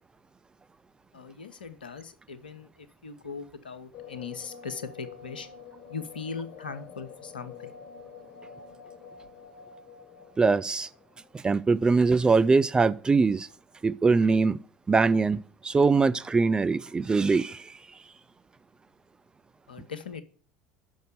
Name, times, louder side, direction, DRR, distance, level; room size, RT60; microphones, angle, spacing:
voice 1, 1.1-5.5 5.9-7.7 19.7-20.2, left 5 dB, 75° left, 0.7 m, -39 dB
sound 1, 3.9-11.5, left 6 dB, 50° left, 1.3 m, -47 dB
voice 2, 10.4-10.9 11.4-13.5 13.8-14.6 14.9-15.4 15.6-17.7, right 4 dB, 15° right, 0.3 m, -22 dB
6.3 x 5.2 x 6.7 m
figure-of-eight pair, 70°, 5 cm